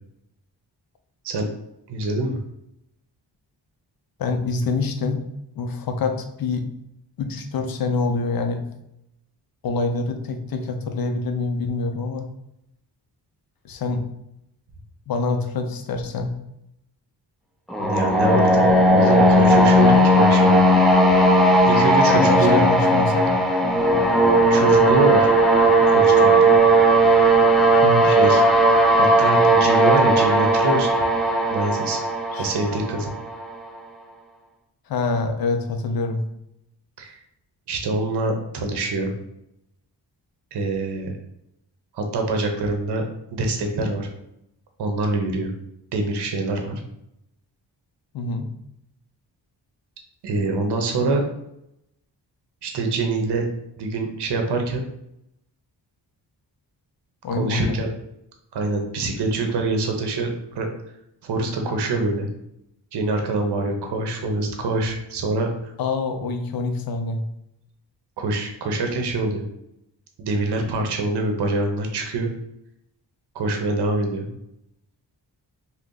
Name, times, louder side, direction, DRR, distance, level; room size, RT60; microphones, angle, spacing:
voice 1, 1.9-2.4 17.8-20.6 21.7-22.6 24.5-25.3 25.9-26.5 28.0-28.4 29.0-30.9 31.5-32.0 32.4-33.1 37.0-37.2 37.7-39.1 40.5-41.1 41.9-43.0 43.3-44.1 44.8-45.5 45.9-46.8 50.2-51.3 52.6-53.4 53.8-54.8 57.4-57.9 58.5-60.3 60.5-60.7 61.2-62.3 62.9-65.7 68.2-69.4 70.2-72.3 73.3-74.3, right 2 dB, 65° right, 3 dB, 0.7 m, -25 dB
voice 2, 4.2-5.2 5.6-6.7 7.2-8.7 9.6-12.3 13.6-14.1 15.1-16.3 22.1-23.3 27.8-28.1 32.3-32.5 34.9-36.2 48.1-48.5 57.2-57.8 65.8-67.2, left 3 dB, 55° left, 5 dB, 0.6 m, -25 dB
sound 1, 17.7-33.5, right 1 dB, ahead, 0.3 m, -16 dB
2.5 x 2.2 x 3.7 m, 0.82 s
cardioid pair, 65°, 43 cm